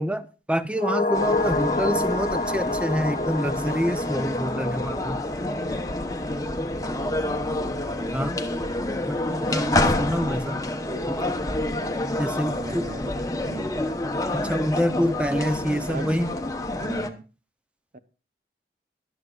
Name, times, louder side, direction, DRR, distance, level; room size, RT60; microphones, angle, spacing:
voice 1, 0.0-5.2 8.1-8.4 9.1-10.6 11.0-11.2 12.2-12.9 14.3-16.3, equal, 5° right, 11 dB, 0.6 m, -27 dB
sound 1, 0.7-9.2 9.5-9.6, left 2 dB, 40° left, 1.1 m, -30 dB
sound 2, 1.1-17.1, left 1 dB, 20° left, 0.9 m, -28 dB
voice 2, 6.9-7.7 12.2-13.0 13.3-13.8 15.9-16.1 16.8-17.3 17.9-18.0, right 4 dB, 45° right, 12 dB, 0.8 m, -40 dB
23.0 x 8.0 x 2.4 m, 0.32 s
head